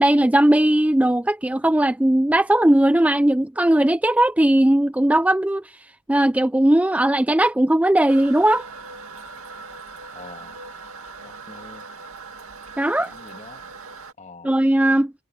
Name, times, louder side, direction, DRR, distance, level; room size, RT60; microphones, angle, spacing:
voice 1, 0.0-5.6 6.1-8.7 12.8-13.1 14.4-15.1, right 1 dB, 5° right, 0.4 m, -18 dB
Toilet flush, 8.1-14.1, right 4 dB, 80° right, 2.3 m, -40 dB
voice 2, 10.1-10.6 11.2-11.8 13.0-13.6 14.2-14.5, left 3 dB, 35° left, 1.9 m, -44 dB
head